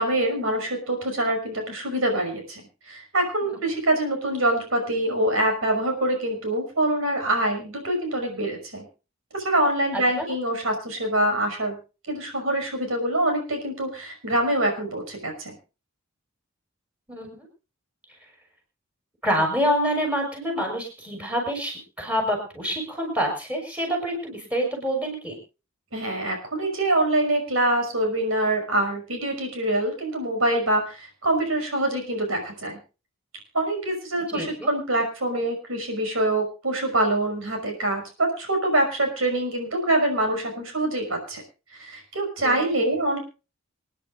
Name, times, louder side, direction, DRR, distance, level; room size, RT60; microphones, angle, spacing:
voice 1, 0.0-8.8 9.3-11.8 12.1-15.6 25.9-32.8 33.5-41.4 41.7-43.2, right 1 dB, 75° right, 4 dB, 5.7 m, -25 dB
voice 2, 9.9-10.3 17.1-17.5 19.2-25.4 34.3-34.7 42.4-42.6, equal, 5° right, 1 dB, 6.0 m, -27 dB
28.0 x 10.5 x 2.5 m, 0.32 s
head